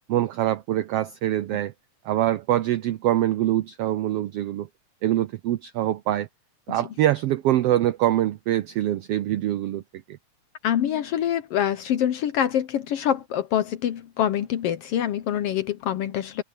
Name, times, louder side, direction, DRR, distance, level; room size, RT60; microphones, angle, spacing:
voice 1, 0.1-1.7 2.0-4.7 5.0-6.3 6.7-9.8, right 13 dB, 85° right, 1.3 m, -24 dB
voice 2, 10.6-16.4, left 10 dB, 75° left, 1.4 m, -25 dB
omnidirectional pair, 3.5 m